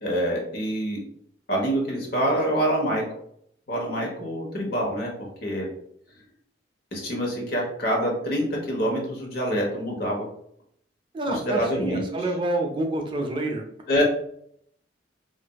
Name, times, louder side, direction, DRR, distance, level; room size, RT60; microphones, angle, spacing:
voice 1, 0.0-1.0 1.5-3.1 3.7-5.1 5.4-5.7 6.9-10.3 11.2-12.0 13.9-14.0, equal, 55° left, -1 dB, 1.0 m, -26 dB
voice 2, 11.1-13.6, right 1 dB, 25° right, 2 dB, 0.4 m, -28 dB
4.0 x 2.5 x 2.2 m, 0.69 s
head